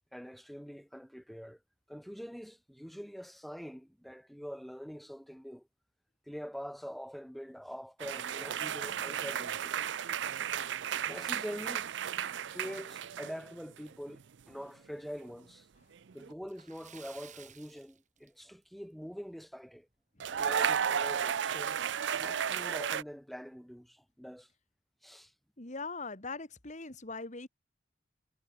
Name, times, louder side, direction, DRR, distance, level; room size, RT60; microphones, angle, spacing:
voice 1, 0.1-1.6 1.9-5.6 6.3-9.8 11.0-11.9 12.2-14.2 14.5-15.7 16.1-19.9 20.3-21.8 22.1-24.5 25.0-25.3, equal, ahead, 1.1 m, -44 dB
sound 1, 8.0-13.5 13.8-14.2 16.1-16.3 20.2-23.0, right 8 dB, 65° right, 0.5 m, -34 dB
Splash splatter, 16.4-18.8 19.1-19.3 19.7-19.8 21.3-21.4 21.7-21.8 22.4-22.7, right 9 dB, 40° right, 3.1 m, -55 dB
voice 2, 25.6-27.5, left 3 dB, 40° left, 2.6 m, -41 dB
head